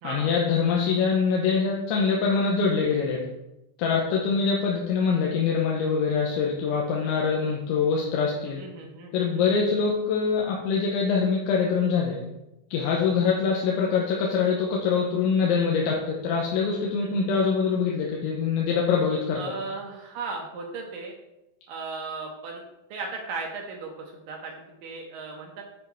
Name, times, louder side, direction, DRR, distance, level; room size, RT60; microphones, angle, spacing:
voice 1, 0.0-3.2 3.8-8.6 9.1-12.2 12.7-19.4, left 5 dB, 85° left, -2 dB, 3.3 m, -24 dB
voice 2, 8.6-9.5 17.0-17.3 19.4-21.1 21.7-22.6 22.9-25.6, right 4 dB, 80° right, 0 dB, 2.0 m, -36 dB
8.6 x 5.1 x 4.7 m, 0.92 s
omnidirectional pair, 5.3 m